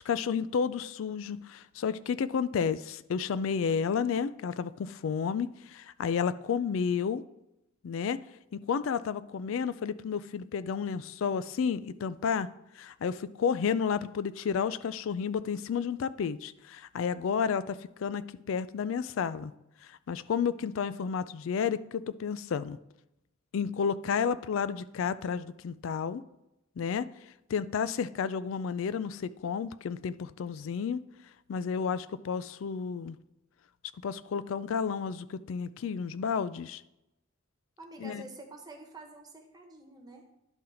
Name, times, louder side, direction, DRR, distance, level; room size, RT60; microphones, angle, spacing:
voice 1, 0.0-7.2 7.8-8.2 8.5-12.5 12.8-19.5 20.1-22.8 23.5-26.2 26.8-27.1 27.5-31.0 31.5-33.2 34.0-36.8 38.0-38.2, left 6 dB, 75° left, 15 dB, 0.3 m, -31 dB
voice 2, 37.8-40.2, right 2 dB, 20° right, 1 dB, 1.2 m, -48 dB
11.0 x 3.9 x 4.3 m, 0.89 s
head